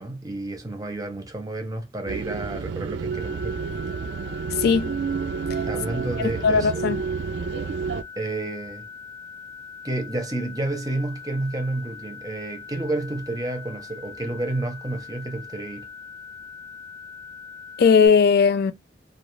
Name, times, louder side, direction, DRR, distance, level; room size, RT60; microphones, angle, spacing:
voice 1, 0.0-3.6 5.7-7.0 8.2-8.8 9.8-15.9, right 2 dB, 20° right, 0.7 m, -30 dB
sound 1, 2.1-8.0, right 5 dB, 65° right, 0.3 m, -30 dB
sound 2, 3.1-18.1, left 5 dB, 20° left, 0.7 m, -42 dB
voice 2, 4.6-4.9 6.4-7.0 17.8-18.7, left 5 dB, 60° left, 0.3 m, -17 dB
2.4 x 2.4 x 3.0 m
head